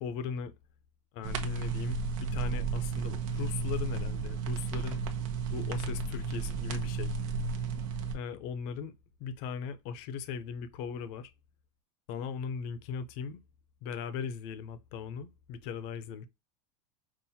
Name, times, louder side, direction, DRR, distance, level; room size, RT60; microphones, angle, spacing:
voice 1, 0.0-0.5 1.1-5.0 5.5-7.2 8.1-8.9 9.2-11.3 12.1-13.4 13.8-16.3, left 6 dB, 40° left, 0.5 m, -38 dB
sound 1, 1.2-8.1, right 5 dB, 75° right, 1.0 m, -33 dB
5.5 x 2.5 x 2.7 m
supercardioid pair, 175°, 18 cm